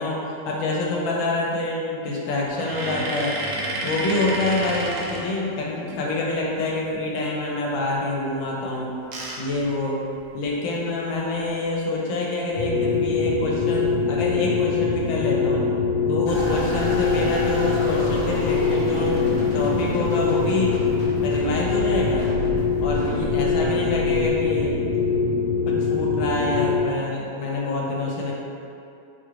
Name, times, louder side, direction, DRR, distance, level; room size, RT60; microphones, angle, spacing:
voice 1, 0.0-3.4 3.8-8.9 9.4-10.0 10.3-15.6 16.1-20.7 21.2-22.3 22.8-24.8 25.7-28.3, left 2 dB, 85° left, -2 dB, 1.3 m, -26 dB
sound 1, 2.5-5.9 8.6-10.6 11.1-11.2 11.4-11.6 13.1-13.5 14.1-14.6, right 1 dB, 80° right, 1.3 m, -31 dB
sound 2, 12.6-26.8, left 5 dB, 70° left, 1.2 m, -23 dB
sound 3, 16.3-24.7, equal, 50° left, 0.9 m, -32 dB
4.3 x 2.4 x 3.1 m, 2.6 s
omnidirectional pair, 2.1 m